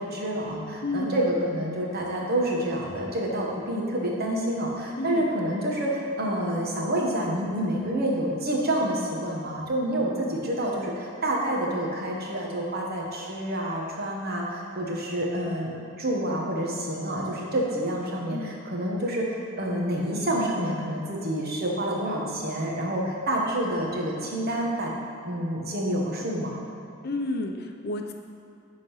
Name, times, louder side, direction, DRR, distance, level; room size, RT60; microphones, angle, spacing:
voice 1, 0.0-15.7 16.0-24.9 25.2-26.5, right 1 dB, 50° right, -2 dB, 1.4 m, -28 dB
voice 2, 0.8-1.1 5.0-5.3 18.3-18.6 27.0-28.1, left 2 dB, 50° left, 3 dB, 0.6 m, -31 dB
10.0 x 4.0 x 5.6 m, 2.6 s
head